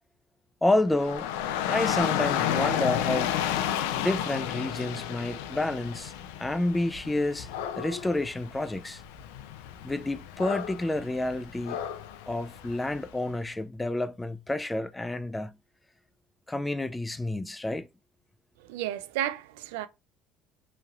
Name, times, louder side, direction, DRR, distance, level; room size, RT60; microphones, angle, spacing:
voice 1, 0.6-1.3 1.7-3.3 4.0-6.1 6.4-7.5 7.8-9.0 9.8-11.8 12.3-15.5 16.5-17.9, left 1 dB, 10° left, 0.4 m, -29 dB
Dog / Rain, 0.9-13.1, left 10 dB, 90° left, 0.4 m, -32 dB
voice 2, 18.6-19.9, right 12 dB, 90° right, 0.4 m, -32 dB
3.1 x 2.8 x 2.4 m
supercardioid pair, 90°, 0 cm